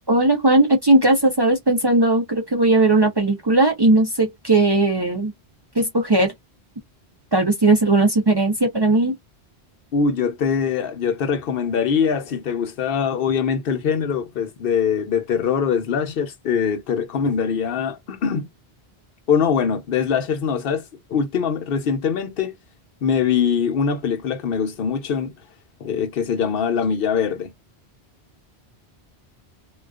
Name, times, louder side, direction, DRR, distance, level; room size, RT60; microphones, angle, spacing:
voice 1, 0.1-5.3 5.8-6.3 7.3-9.1, right 2 dB, 35° right, 0.4 m, -18 dB
voice 2, 9.9-18.5 19.3-20.8 21.1-22.5 23.0-25.3 25.8-27.5, left 6 dB, 65° left, 0.8 m, -22 dB
2.3 x 2.2 x 2.3 m
omnidirectional pair, 1.1 m